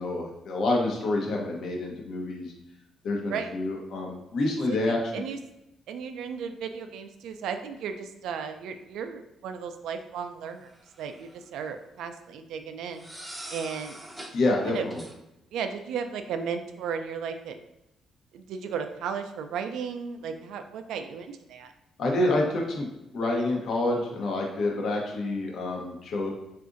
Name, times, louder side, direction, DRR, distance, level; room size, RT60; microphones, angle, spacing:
voice 1, 0.0-2.5 3.0-5.0 14.3-15.0 22.0-22.9 23.1-26.3, left 2 dB, 65° left, 0 dB, 0.7 m, -27 dB
voice 2, 4.7-5.4 5.9-10.7 11.0-13.1 13.5-14.0 14.4-14.9 15.5-17.6 18.3-21.7, right 6 dB, 85° right, 7 dB, 0.3 m, -35 dB
sound 1, 10.7-11.4 12.9-14.4 14.9-15.1, right 1 dB, 10° right, 0.5 m, -43 dB
3.7 x 2.5 x 2.5 m, 0.87 s
cardioid pair, 90°, 0 cm